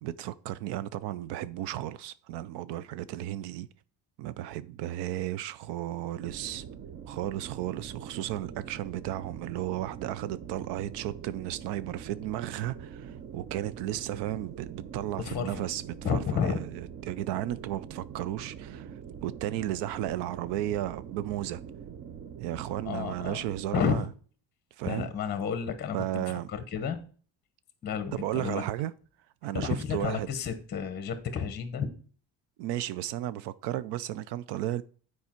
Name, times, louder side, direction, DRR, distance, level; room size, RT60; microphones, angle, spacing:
voice 1, 0.0-3.7 4.2-6.6 7.1-21.6 22.4-24.0 24.8-25.1 25.9-26.5 28.1-28.9 29.4-30.3 32.6-34.8, right 13 dB, 80° right, 0.5 m, -34 dB
sound 1, 6.2-23.7, right 8 dB, 35° right, 0.5 m, -44 dB
voice 2, 15.2-15.6 16.0-16.6 22.8-23.4 23.7-24.1 24.8-27.0 27.8-28.6 29.5-31.9, left 7 dB, 25° left, 0.9 m, -31 dB
9.7 x 4.8 x 4.4 m
cardioid pair, 165°, 41 cm